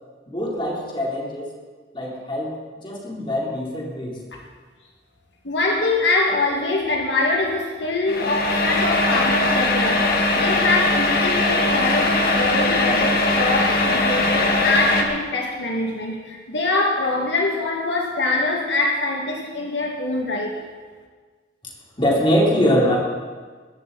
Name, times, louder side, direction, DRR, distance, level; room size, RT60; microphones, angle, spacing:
voice 1, 0.3-1.5 1.9-4.2 22.0-23.0, equal, 30° left, -3 dB, 3.8 m, -22 dB
voice 2, 5.4-20.6, left 2 dB, 85° left, 0 dB, 2.2 m, -24 dB
sound 1, 8.1-15.0, left 2 dB, 55° left, 2.0 m, -20 dB
20.0 x 13.5 x 4.2 m, 1.5 s
head